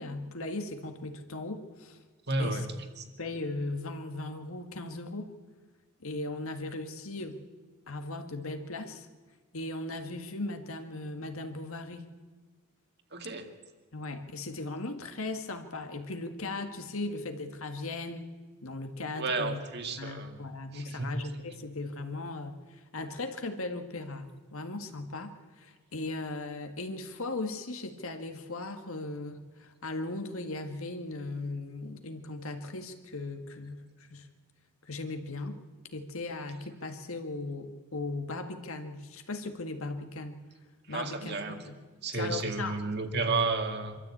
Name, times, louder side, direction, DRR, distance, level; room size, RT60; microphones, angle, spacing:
voice 1, 0.0-2.0 2.4-2.7 3.2-5.3 6.0-7.4 7.9-9.1 9.5-12.1 13.9-18.3 18.6-19.6 20.0-34.3 34.8-35.6 35.9-40.4 40.9-41.8 42.1-42.8, left 2 dB, 70° left, 7 dB, 1.8 m, -38 dB
voice 2, 2.3-2.7 3.0-3.1 13.1-13.5 19.2-20.3 20.7-21.1 40.9-41.6 42.0-44.0, right 3 dB, 50° right, 5 dB, 2.1 m, -32 dB
25.0 x 13.5 x 8.5 m, 1.4 s
head